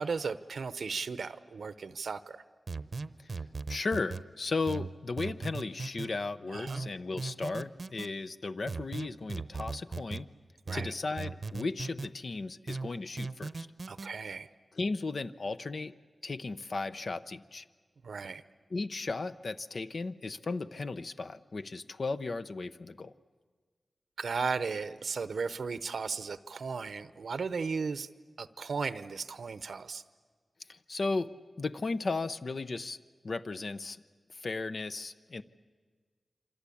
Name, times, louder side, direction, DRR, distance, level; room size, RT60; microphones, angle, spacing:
voice 1, 0.0-2.4 6.5-6.8 10.7-10.9 13.9-14.5 18.0-18.4 24.2-28.1 28.4-30.0, right 5 dB, 85° right, 13 dB, 0.8 m, -35 dB
sound 1, 2.7-4.2 4.7-6.1 6.7-8.1 8.7-10.2 10.7-12.1 12.7-14.1, right 4 dB, 55° right, 0.8 m, -38 dB
voice 2, 3.7-10.3 10.7-13.7 14.7-15.9 16.2-17.6 18.7-23.1 30.7-31.3 31.6-33.0 33.2-34.0 34.3-35.4, left 3 dB, 60° left, 11 dB, 0.7 m, -35 dB
27.0 x 25.5 x 8.5 m, 1.5 s
wide cardioid pair, 95°, 0 cm